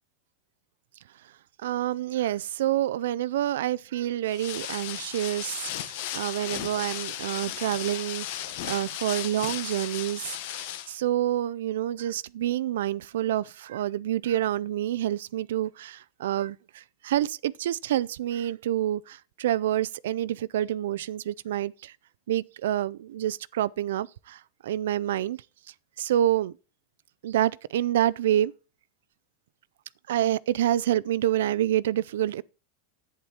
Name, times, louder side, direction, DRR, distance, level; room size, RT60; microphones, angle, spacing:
voice 1, 1.6-22.0 22.3-25.4 26.0-26.5 27.2-28.5 30.1-32.4, right 12 dB, 90° right, 0.4 m, -28 dB
sound 1, 4.3-11.0, left 12 dB, 60° left, 1.3 m, -35 dB
11.0 x 8.7 x 4.4 m
supercardioid pair, 165°, 0 cm